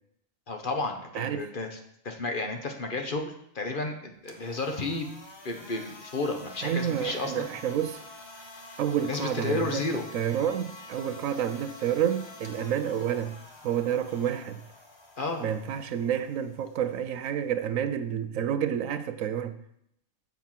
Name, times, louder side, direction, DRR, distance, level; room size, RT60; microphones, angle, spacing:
voice 1, 0.5-1.8 2.0-5.1 5.4-7.5 9.1-10.0 15.2-15.4, left 3 dB, 45° left, 1.2 m, -32 dB
voice 2, 1.1-1.5 6.6-8.0 8.8-9.8 10.1-13.4 13.6-14.6 15.4-19.6, right 9 dB, 90° right, 1.1 m, -29 dB
sound 1, 4.1-18.2, left 2 dB, 20° left, 1.1 m, -48 dB
7.4 x 5.9 x 7.4 m
omnidirectional pair, 1.3 m